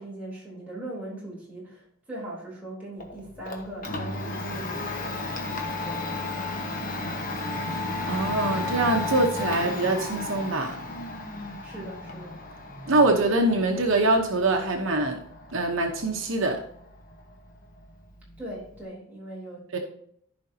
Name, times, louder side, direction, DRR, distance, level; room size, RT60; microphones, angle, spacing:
voice 1, 0.0-6.2 11.6-12.4 18.4-19.8, right 1 dB, 5° right, -6 dB, 3.8 m, -40 dB
Domestic sounds home sounds, 3.0-18.8, left 2 dB, 40° left, 1.3 m, -34 dB
voice 2, 8.1-10.8 12.9-15.2 15.5-16.6 19.7-19.8, right 2 dB, 65° right, 2 dB, 1.0 m, -24 dB
14.5 x 5.2 x 2.8 m, 0.67 s
head